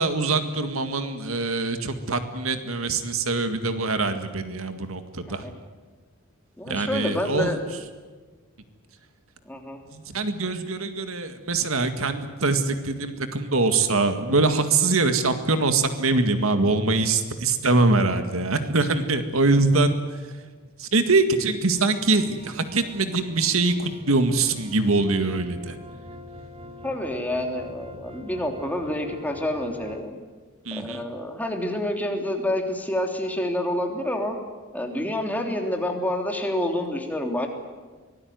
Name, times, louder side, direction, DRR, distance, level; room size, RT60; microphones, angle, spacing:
voice 1, 0.0-5.4 6.7-7.6 9.9-20.2 20.8-25.8 30.7-31.0, right 3 dB, 70° right, 8 dB, 2.0 m, -23 dB
voice 2, 6.6-7.6 9.5-9.8 26.8-30.1 30.7-34.4 34.7-37.5, left 1 dB, 10° left, 3 dB, 3.2 m, -28 dB
sound 1, 21.8-30.0, left 1 dB, 30° right, 2.6 m, -44 dB
24.0 x 18.5 x 9.5 m, 1.4 s
head